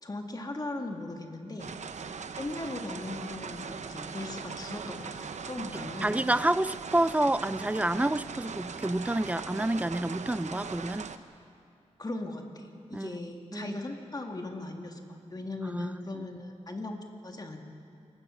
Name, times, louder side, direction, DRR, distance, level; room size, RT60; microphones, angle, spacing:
voice 1, 0.0-1.7 2.4-6.2 12.0-15.0 15.3-17.6, left 2 dB, 30° left, 2.0 m, -38 dB
sound 1, 1.6-11.2, right 5 dB, 70° right, 0.9 m, -40 dB
voice 2, 6.0-11.1 12.9-13.1 13.5-13.8 15.7-15.9, right 1 dB, 10° right, 0.4 m, -28 dB
28.0 x 16.5 x 6.3 m
cardioid pair, 75°, 12 cm